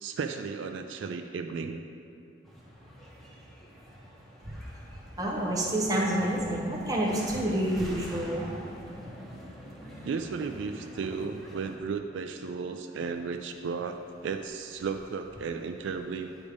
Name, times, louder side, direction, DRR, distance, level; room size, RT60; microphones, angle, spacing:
voice 1, 0.0-1.9 10.0-16.3, right 5 dB, 75° right, 6 dB, 0.3 m, -34 dB
sound 1, 2.4-11.8, equal, ahead, 0.9 m, -46 dB
voice 2, 5.2-8.6, right 1 dB, 20° right, -3 dB, 1.1 m, -28 dB
9.3 x 3.5 x 5.1 m, 2.7 s
head